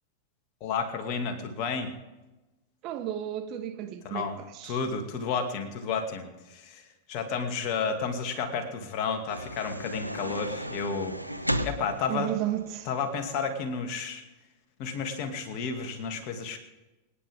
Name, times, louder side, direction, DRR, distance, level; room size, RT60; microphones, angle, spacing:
voice 1, 0.6-1.9 4.0-4.4 4.6-6.8 7.1-11.2 11.6-12.3 12.9-14.2 14.8-16.6, left 5 dB, 40° left, 2.4 m, -31 dB
voice 2, 2.8-4.8 12.1-12.9, right 12 dB, 40° right, 1.3 m, -33 dB
sound 1, 9.3-13.1, equal, 90° left, 0.9 m, -35 dB
26.0 x 10.0 x 3.6 m
figure-of-eight pair, 90°, 0 cm